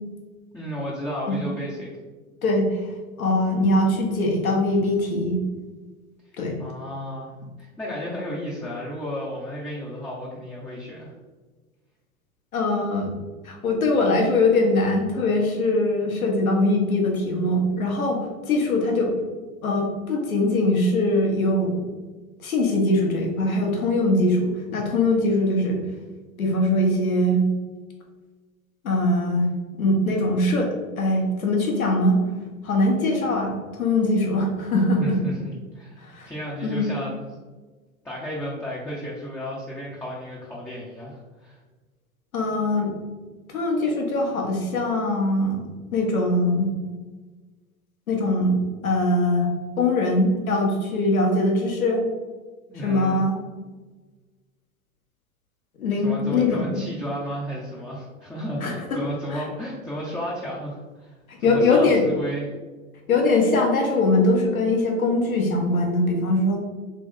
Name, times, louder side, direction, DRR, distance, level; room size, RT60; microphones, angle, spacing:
voice 1, 0.5-1.9 6.6-7.3 7.6-11.1 35.0-37.2 38.0-41.6 52.7-53.3 56.0-62.5, equal, 5° left, -6 dB, 0.5 m, -33 dB
voice 2, 2.4-2.9 3.2-5.4 6.4-6.5 12.5-13.1 13.4-18.2 18.5-19.1 19.6-21.8 22.4-25.8 26.4-27.5 28.8-29.5 29.8-32.2 32.6-35.2 36.0-36.3 36.6-36.9 42.3-42.9 43.5-45.6 45.9-46.7 48.1-48.6 48.8-52.0 52.8-53.4 55.8-56.8 58.6-59.1 59.3-59.4 61.3-62.0 63.1-66.6, left 2 dB, 85° left, 0 dB, 1.1 m, -22 dB
3.4 x 3.1 x 3.6 m, 1.3 s
hypercardioid pair, 95°, 41 cm